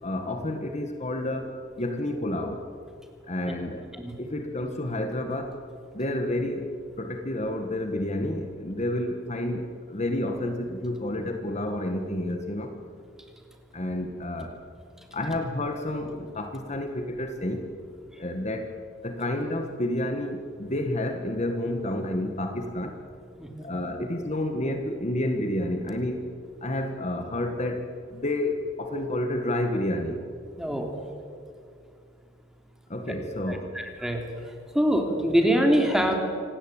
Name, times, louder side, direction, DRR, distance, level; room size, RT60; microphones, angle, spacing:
voice 1, 0.0-2.6 3.3-3.9 4.2-5.6 5.9-6.7 7.0-12.7 13.7-14.6 15.1-17.7 18.2-18.7 19.0-22.9 23.6-26.2 26.6-30.2 32.9-33.8, left 1 dB, 35° left, 5 dB, 1.6 m, -30 dB
voice 2, 30.6-30.9 33.5-36.2, equal, 5° right, 3 dB, 3.1 m, -25 dB
26.0 x 18.0 x 8.8 m, 2.3 s
head